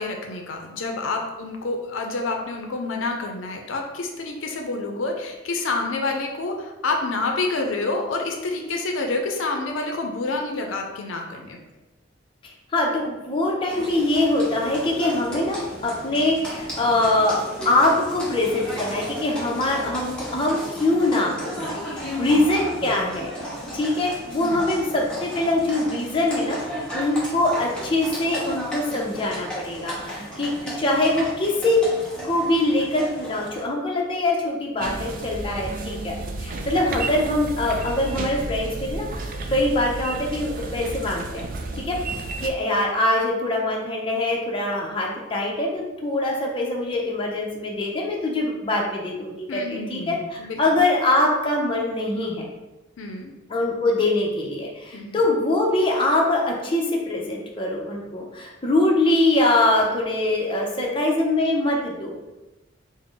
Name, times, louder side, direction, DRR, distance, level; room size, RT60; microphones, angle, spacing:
voice 1, 0.0-11.6 22.0-22.4 24.4-24.6 49.5-50.8 53.0-53.3 54.9-55.3, left 3 dB, 80° left, 3 dB, 0.5 m, -28 dB
voice 2, 12.4-23.3 23.7-31.8 32.2-41.5 41.7-42.0 42.4-52.5 53.5-62.2, left 2 dB, 25° left, -1 dB, 0.5 m, -23 dB
Livestock farm animals working animals, 13.7-33.6, right 1 dB, 5° left, 0.8 m, -34 dB
sound 1, 34.8-42.5, right 3 dB, 45° right, 0.3 m, -32 dB
3.6 x 2.0 x 3.7 m, 1.1 s
head